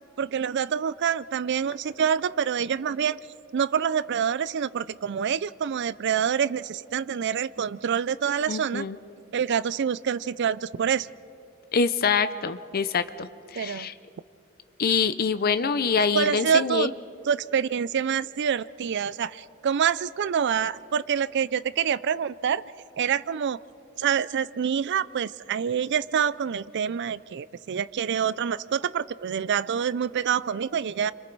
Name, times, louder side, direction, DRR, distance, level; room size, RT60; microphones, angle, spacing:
voice 1, 0.2-3.2 3.5-8.9 9.3-11.1 13.6-13.9 16.1-16.9 17.3-22.6 23.0-23.6 24.0-31.1, right 7 dB, 55° right, 18 dB, 0.4 m, -26 dB
voice 2, 8.5-9.0 11.7-13.9 14.8-16.9, left 5 dB, 45° left, 12 dB, 0.6 m, -25 dB
30.0 x 25.5 x 4.6 m, 2.8 s
head